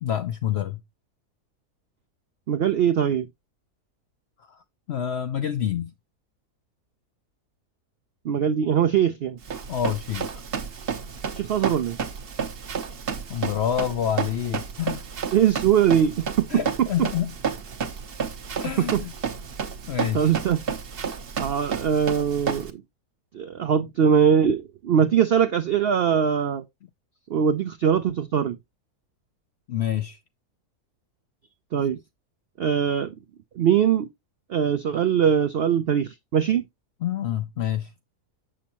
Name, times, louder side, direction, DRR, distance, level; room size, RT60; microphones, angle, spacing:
voice 1, 0.0-0.8 4.5-4.6 4.9-5.9 9.7-10.4 13.3-15.1 16.5-17.4 18.6-19.1 19.9-20.3 29.7-30.2 37.0-37.9, left 10 dB, 75° left, 0.6 m, -27 dB
voice 2, 2.5-3.3 8.2-9.4 11.3-12.0 15.3-16.5 16.8-16.9 18.8-19.0 20.1-20.6 21.4-22.8 23.3-26.6 27.3-28.6 31.7-32.0 32.6-33.1 33.6-34.1 34.5-36.6, right 8 dB, 85° right, 0.5 m, -21 dB
Run, 9.4-22.7, right 6 dB, 45° right, 0.9 m, -31 dB
7.2 x 6.1 x 2.9 m
omnidirectional pair, 1.6 m